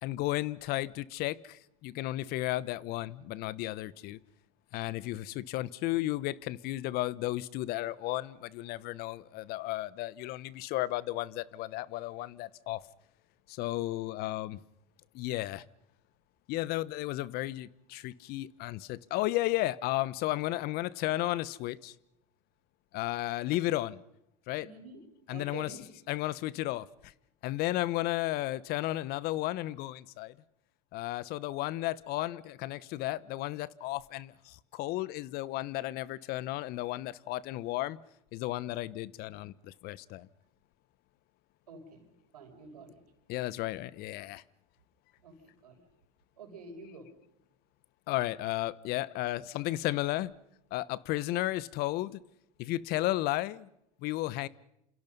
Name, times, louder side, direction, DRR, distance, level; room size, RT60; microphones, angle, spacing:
voice 1, 0.0-4.2 4.7-12.8 13.5-14.6 15.1-15.6 16.5-21.9 22.9-24.0 24.5-24.7 25.3-25.8 26.1-27.1 27.4-30.3 30.9-38.0 38.3-40.3 43.3-44.4 48.1-50.3 50.7-52.2 52.6-53.7 54.0-54.5, left 16 dB, 55° left, 1.0 m, -33 dB
voice 2, 24.6-25.8 41.7-43.0 45.2-45.8 46.4-47.1, right 3 dB, 90° right, 5.8 m, -49 dB
28.5 x 28.0 x 5.5 m
hypercardioid pair, 90°, 19 cm